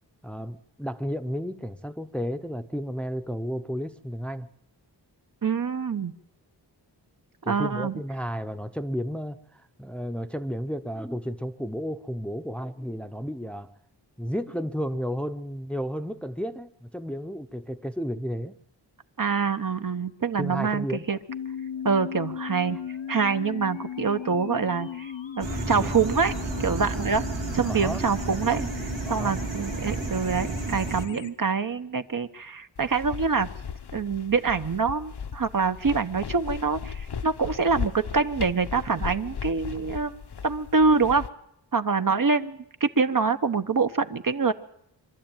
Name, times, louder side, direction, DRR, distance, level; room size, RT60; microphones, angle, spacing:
voice 1, 0.2-4.5 7.4-9.4 9.8-13.7 14.2-18.5 20.4-21.1 25.7-25.9 27.7-28.0 29.0-29.3, equal, 5° left, 8 dB, 0.8 m, -32 dB
voice 2, 5.4-6.1 7.5-8.0 19.2-21.2 21.8-22.8 23.1-26.3 26.6-27.2 27.5-28.7 29.1-33.5 33.9-40.2 40.4-41.2 41.7-44.5, right 5 dB, 50° right, 9 dB, 1.1 m, -25 dB
sound 1, 21.3-31.3, left 8 dB, 90° left, 1.2 m, -37 dB
sound 2, 25.4-31.1, right 3 dB, 75° right, 2.5 m, -32 dB
sound 3, 32.8-41.3, left 6 dB, 60° left, 1.0 m, -37 dB
25.0 x 13.0 x 9.0 m, 0.75 s
wide cardioid pair, 90°, 44 cm